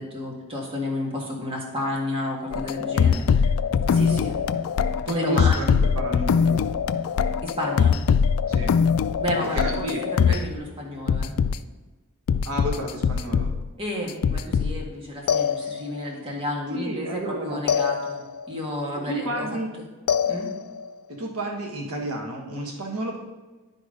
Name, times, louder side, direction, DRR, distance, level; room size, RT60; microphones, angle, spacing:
voice 1, 0.0-3.5 3.9-4.3 5.1-5.6 7.4-8.0 9.2-11.4 13.8-18.2 18.5-19.5 20.3-20.5, left 1 dB, 25° right, -2 dB, 1.6 m, -31 dB
sound 1, 2.5-10.5 11.1-11.6 12.3-13.7 14.1-14.9 15.3-16.1 17.7-18.5 20.1-20.9, left 6 dB, 75° left, 0.3 m, -22 dB
voice 2, 5.0-6.7 8.5-8.7 9.4-10.4 12.4-13.5 16.7-17.6 18.9-19.7 21.1-23.2, right 1 dB, 85° right, 0 dB, 1.4 m, -31 dB
10.5 x 4.0 x 5.0 m, 1.2 s
head